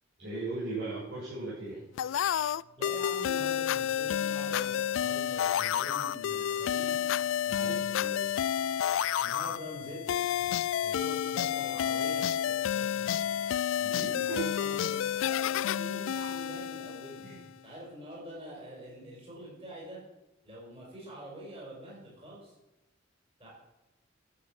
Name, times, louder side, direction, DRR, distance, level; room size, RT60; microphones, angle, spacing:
voice 1, 0.2-1.8 7.5-8.4 13.8-14.4 17.2-17.4, right 3 dB, 65° right, -10 dB, 5.8 m, -38 dB
sound 1, 2.0-17.5, left 9 dB, 70° left, 0.3 m, -30 dB
voice 2, 2.8-6.9 7.5-7.8 9.2-10.5 10.8-13.4 14.2-17.3 17.6-20.0 20.4-22.5 23.4-23.5, equal, 30° right, -4 dB, 5.6 m, -45 dB
11.5 x 7.9 x 7.5 m, 1.0 s
head